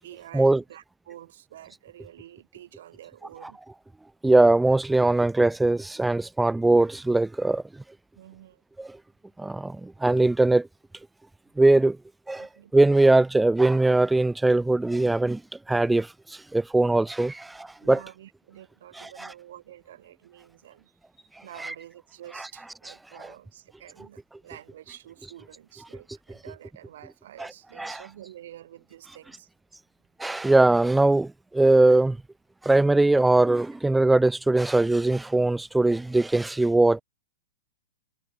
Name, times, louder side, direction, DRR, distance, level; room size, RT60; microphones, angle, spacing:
voice 1, 0.0-3.6 8.1-8.6 12.4-12.8 17.3-17.4 17.8-29.5, right 12 dB, 60° right, 7.5 m, -48 dB
voice 2, 4.2-7.6 8.8-9.0 9.4-10.7 11.6-12.0 12.3-15.4 15.7-18.0 18.9-19.3 21.6-21.7 22.3-22.5 22.8-23.3 27.4-28.0 30.2-32.2 32.6-37.0, right 2 dB, 5° right, 0.9 m, -21 dB
hypercardioid pair, 115°, 0 cm